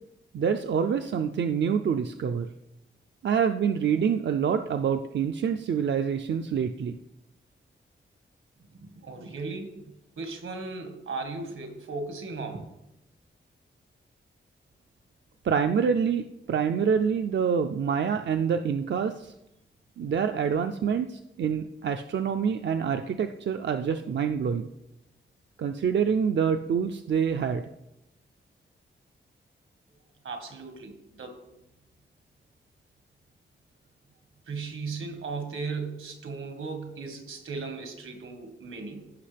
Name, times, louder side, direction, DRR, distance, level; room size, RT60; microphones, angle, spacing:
voice 1, 0.3-2.5 3.2-7.0 15.4-19.3 20.0-24.7 25.6-27.6, right 7 dB, 65° right, 6 dB, 0.4 m, -26 dB
voice 2, 8.8-9.8 10.2-12.7 30.2-31.4 34.5-39.0, right 4 dB, 85° right, 5 dB, 1.6 m, -36 dB
15.5 x 5.7 x 3.4 m, 0.88 s
wide cardioid pair, 165°, 20 cm